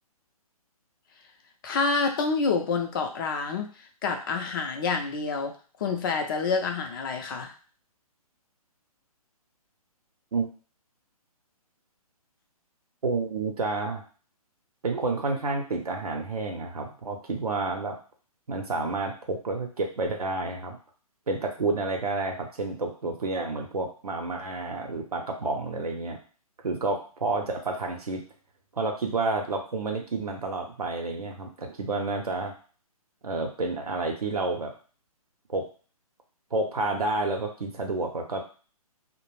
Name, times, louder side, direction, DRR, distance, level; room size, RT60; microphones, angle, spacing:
voice 1, 1.6-5.5 5.8-7.5, left 4 dB, 35° left, 4 dB, 0.5 m, -28 dB
voice 2, 13.0-14.0 14.8-18.0 18.5-20.8 21.3-26.2 26.6-28.2 28.7-32.5 33.2-34.7 35.5-35.7 36.5-38.4, right 3 dB, 75° right, 1 dB, 0.6 m, -30 dB
2.3 x 2.0 x 3.2 m, 0.38 s
figure-of-eight pair, 130°, 19 cm